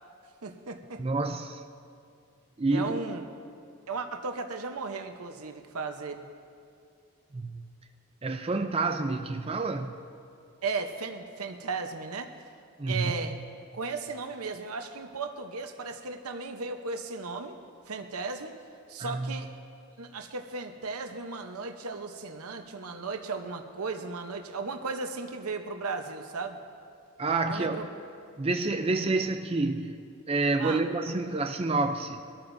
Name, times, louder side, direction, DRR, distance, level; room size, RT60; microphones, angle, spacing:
voice 1, 0.4-1.0 2.7-3.3 3.9-6.2 10.6-12.3 12.9-13.3 13.7-17.6 17.9-18.5 18.9-19.5 20.0-26.6 27.5-27.9 30.6-30.8, right 4 dB, 85° right, 0.9 m, -35 dB
voice 2, 1.0-1.6 2.6-3.0 7.3-7.6 8.2-9.9 12.8-13.1 19.0-19.4 27.2-27.9 28.4-30.0 30.3-32.2, right 3 dB, 25° right, 0.4 m, -28 dB
23.0 x 13.5 x 2.7 m
head